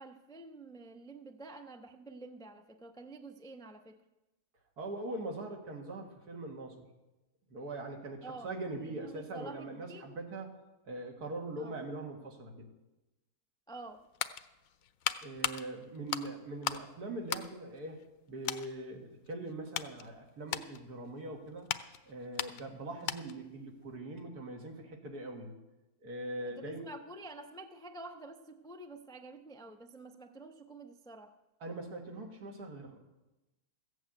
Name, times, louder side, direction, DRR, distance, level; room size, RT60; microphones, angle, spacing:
voice 1, 0.0-4.0 8.2-8.5 8.9-10.2 11.6-11.7 13.7-14.0 26.6-31.3, right 2 dB, 5° left, 6 dB, 0.4 m, -49 dB
voice 2, 4.8-6.8 7.5-10.6 10.8-12.7 15.2-18.0 18.3-21.7 22.1-25.5 26.0-26.8 31.6-33.0, right 2 dB, 80° right, 2 dB, 2.4 m, -42 dB
sound 1, 13.8-16.9 17.2-18.2 18.4-18.7 19.2-23.5 23.8-23.9, left 10 dB, 65° left, 1.0 m, -38 dB
15.0 x 7.9 x 7.9 m, 1.0 s
omnidirectional pair, 1.6 m